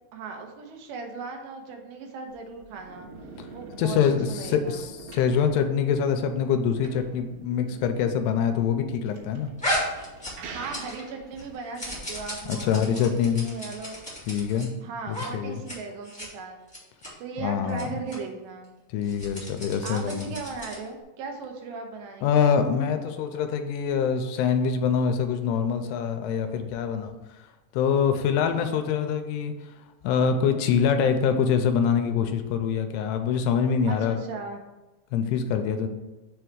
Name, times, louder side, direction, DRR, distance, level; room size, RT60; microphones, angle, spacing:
voice 1, 0.1-3.1 3.5-4.0 4.3-4.8 10.5-14.0 14.8-16.6 17.2-18.7 19.2-19.5 19.8-22.5 33.9-34.6, right 4 dB, 90° right, 3 dB, 3.1 m, -37 dB
sound 1, 2.3-11.5, right 3 dB, 70° right, 3.0 m, -45 dB
voice 2, 3.8-9.5 12.5-13.5 14.3-14.7 15.1-15.6 17.4-17.9 18.9-20.3 22.2-27.2 27.7-29.5 30.0-34.2 35.1-35.9, left 7 dB, 85° left, 7 dB, 2.7 m, -24 dB
sound 2, 9.6-11.1 11.4-14.7 15.1-15.3 15.5-15.8 16.0-16.3 16.7-17.1 17.7-17.8 18.1-18.2 19.0-20.9, equal, 5° left, 0.6 m, -34 dB
6.9 x 3.4 x 6.2 m, 1.1 s
omnidirectional pair, 4.8 m